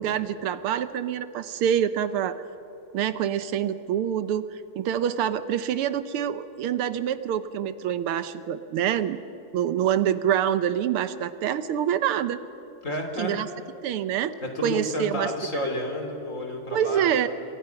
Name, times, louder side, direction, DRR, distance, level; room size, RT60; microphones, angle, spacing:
voice 1, 0.0-2.4 2.9-4.5 4.8-9.2 9.5-12.4 13.2-13.5 13.8-14.3 14.6-15.3 16.7-17.3, right 9 dB, 80° right, 12 dB, 1.7 m, -26 dB
voice 2, 12.8-13.3 14.4-17.2, left 1 dB, 35° left, 4 dB, 3.3 m, -31 dB
28.0 x 24.0 x 5.8 m, 2.9 s
omnidirectional pair, 2.4 m